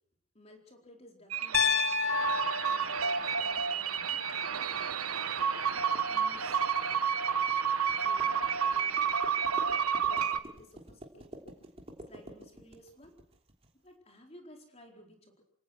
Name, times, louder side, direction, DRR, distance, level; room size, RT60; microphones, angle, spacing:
voice 1, 0.3-2.2 2.6-4.8 6.0-6.6 8.0-9.7 10.1-11.5 12.1-13.2 13.7-15.4, equal, 30° left, 2 dB, 4.5 m, -56 dB
sound 1, 1.3-10.4, right 7 dB, 85° right, 1.3 m, -30 dB
Piano, 1.5-5.6, left 7 dB, 75° left, 1.8 m, -33 dB
sound 2, 2.1-13.7, equal, 25° right, 3.3 m, -51 dB
28.0 x 17.5 x 6.3 m, 0.63 s
head